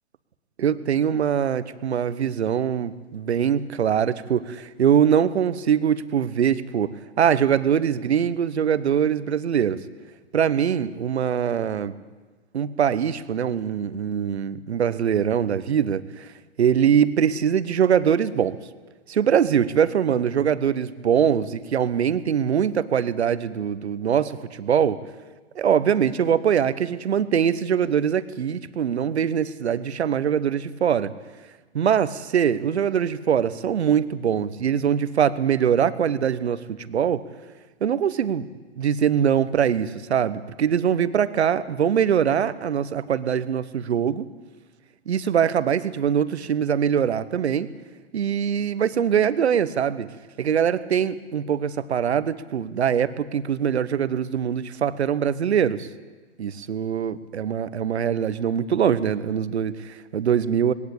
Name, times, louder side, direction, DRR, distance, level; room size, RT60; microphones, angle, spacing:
voice 1, 0.6-9.8 10.3-11.9 12.5-16.3 16.6-18.6 19.1-25.0 25.5-31.1 31.7-37.2 37.8-38.5 38.8-44.3 45.1-47.7 48.1-50.1 50.4-55.9 56.4-60.7, right 8 dB, 70° right, 15 dB, 1.2 m, -22 dB
20.5 x 17.0 x 8.7 m, 1.3 s
figure-of-eight pair, 120°, 34 cm